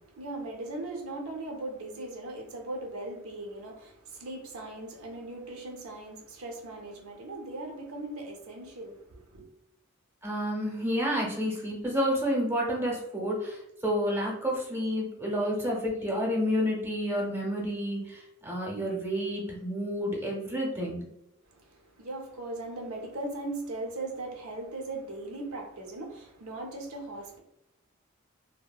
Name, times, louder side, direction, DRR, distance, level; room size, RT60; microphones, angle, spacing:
voice 1, 0.0-9.4 21.5-27.4, right 2 dB, 80° right, 0.5 m, -39 dB
voice 2, 10.2-21.1, equal, 10° right, 0.7 m, -30 dB
2.7 x 2.0 x 2.3 m
head